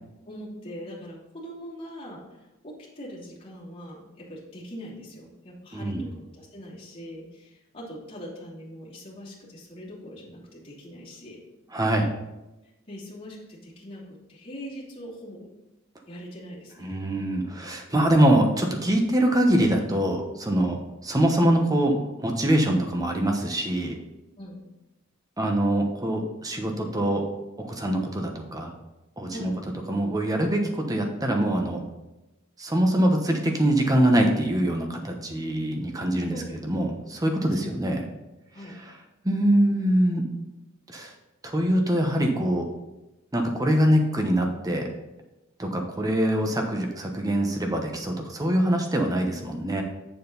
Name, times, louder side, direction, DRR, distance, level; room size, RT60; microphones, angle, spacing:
voice 1, 0.3-11.4 12.9-15.5 16.1-17.0 24.4-24.6 29.3-29.6 36.3-36.6 37.6-37.8 38.5-38.8, equal, 30° left, -8 dB, 3.0 m, -42 dB
voice 2, 5.7-6.0 11.7-12.1 16.8-20.8 21.0-24.0 25.4-27.2 27.6-28.7 29.2-29.5 29.9-31.8 32.6-36.4 36.7-38.0 39.2-40.2 40.9-41.1 41.4-42.7 43.3-44.9 45.6-49.8, right 1 dB, 20° right, 2 dB, 1.1 m, -24 dB
7.6 x 7.0 x 4.0 m, 1.0 s
head